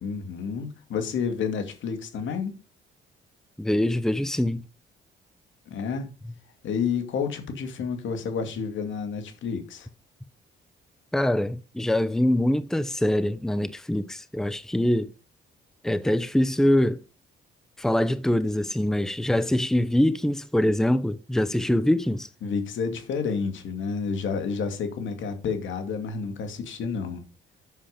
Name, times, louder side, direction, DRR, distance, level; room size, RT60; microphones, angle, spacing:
voice 1, 0.0-2.6 5.7-6.1 6.6-9.9 22.4-27.2, left 5 dB, 75° left, 2.3 m, -30 dB
voice 2, 3.6-4.6 11.1-15.1 15.8-17.0 17.8-22.3, left 1 dB, ahead, 0.7 m, -24 dB
7.9 x 6.9 x 5.1 m
cardioid pair, 90°, 20 cm